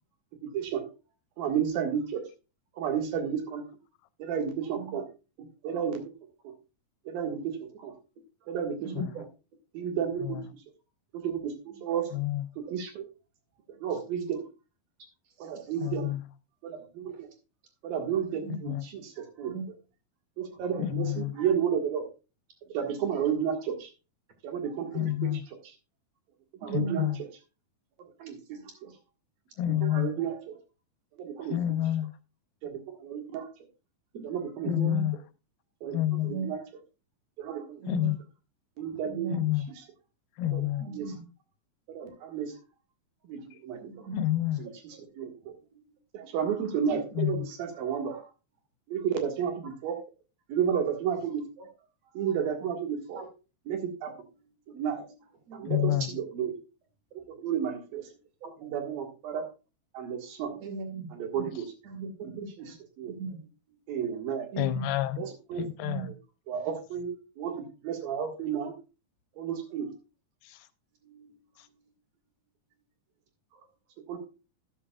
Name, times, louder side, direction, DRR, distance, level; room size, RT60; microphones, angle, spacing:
voice 1, 0.5-0.8 1.4-2.2 2.8-3.6 4.2-5.1 5.4-6.0 6.5-6.6 7.1-7.5 7.8-7.9 8.5-9.0 9.7-10.4 11.1-11.5 11.8-12.0 12.6-13.0 13.8-14.4 15.4-16.1 16.6-17.3 17.8-19.5 20.4-22.0 22.7-23.9 24.4-25.1 26.5-27.1 28.2-28.4 28.8-28.9 29.8-30.4 31.2-31.6 32.6-33.5 34.2-34.7 35.8-36.6 37.4-37.8 38.8-39.3 40.5-40.6 40.9-41.1 41.9-42.5 43.3-44.1 44.6-45.6 46.1-48.2 48.9-50.0 50.5-51.7 52.2-53.2 53.7-54.1 54.7-55.0 55.5-56.5 57.4-58.0 58.6-59.4 59.9-60.6 61.1-61.6 62.2-62.7 63.0-63.1 63.9-64.5 65.2-65.6 66.5-68.7 69.4-69.9 74.1-74.2, right 8 dB, 85° right, 4 dB, 3.6 m, -32 dB
voice 2, 8.8-9.2 10.3-10.4 15.4-15.5 18.3-18.6 19.5-19.7 26.6-27.0 28.2-28.6 34.1-34.2 34.6-35.1 36.2-36.6 37.8-38.1 39.0-39.4 40.8-41.2 43.8-44.2 45.7-45.8 46.9-47.2 53.2-53.3 54.7-55.1 55.5-55.8 57.3-57.5 58.4-58.7 60.6-61.1 61.3-61.5 61.8-62.7 63.0-63.4 64.5-64.9 65.8-66.1 71.0-71.4, right 5 dB, 50° right, 5 dB, 3.1 m, -38 dB
voice 3, 12.1-12.5 15.8-16.2 18.5-18.9 20.8-21.3 24.9-25.4 26.7-27.2 29.6-30.2 31.5-32.1 34.7-35.2 35.9-36.3 37.9-38.2 39.3-39.7 40.4-40.9 44.1-44.6 47.2-47.5 55.7-56.1 64.6-65.2 65.6-66.1, left 13 dB, 85° left, 13 dB, 2.5 m, -28 dB
12.5 x 10.0 x 2.4 m, 0.30 s
omnidirectional pair, 4.0 m